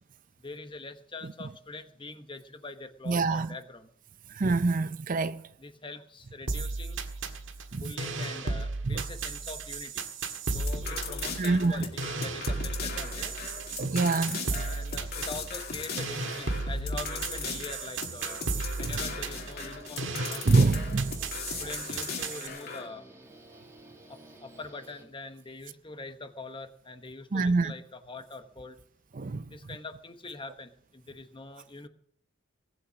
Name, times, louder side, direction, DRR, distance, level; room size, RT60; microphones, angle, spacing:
voice 1, 0.4-3.9 5.6-7.0 7.8-10.1 10.5-13.3 14.5-18.4 18.8-20.5 21.6-23.1 24.1-28.8 29.5-31.9, left 3 dB, 25° left, 1.0 m, -43 dB
voice 2, 3.1-3.5 4.3-5.4 7.7-7.8 8.9-9.1 11.4-11.8 13.8-14.4 18.8-18.9 20.4-21.1 27.3-27.7 29.1-29.5, right 3 dB, 40° right, 0.5 m, -25 dB
sound 1, 6.5-22.5, right 3 dB, 70° right, 1.7 m, -35 dB
sound 2, 10.5-22.9, left 4 dB, 50° left, 2.5 m, -38 dB
Guitar, 19.0-25.6, right 1 dB, 15° right, 2.1 m, -52 dB
18.0 x 8.4 x 6.3 m
head